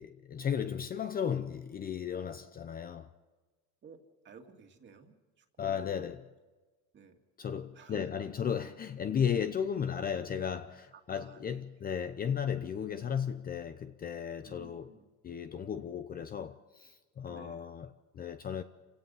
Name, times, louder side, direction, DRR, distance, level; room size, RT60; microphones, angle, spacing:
voice 1, 0.0-3.1 5.6-6.3 7.4-14.9 15.2-18.6, left 8 dB, 25° left, 0.7 m, -35 dB
voice 2, 3.8-6.1 6.9-7.2 7.7-8.2 10.9-11.6 14.4-15.1 17.3-17.7, right 5 dB, 30° right, 2.3 m, -55 dB
28.5 x 17.0 x 5.6 m
cardioid pair, 140°, 36 cm